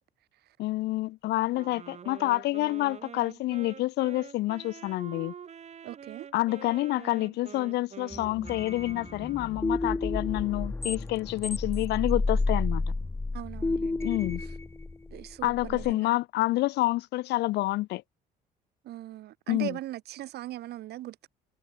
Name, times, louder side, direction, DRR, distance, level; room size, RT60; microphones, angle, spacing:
voice 1, 0.6-5.3 6.3-12.8 14.0-14.4 15.4-18.0 19.5-19.8, left 18 dB, 80° left, 1.6 m, -28 dB
Wind instrument woodwind instrument, 1.5-9.8, right 7 dB, 40° right, 4.4 m, -46 dB
voice 2, 5.8-6.3 13.3-14.1 15.1-16.1 18.8-21.3, right 14 dB, 75° right, 5.9 m, -40 dB
sound 1, 8.1-15.9, left 3 dB, 15° left, 2.5 m, -31 dB
cardioid pair, 110°, 17 cm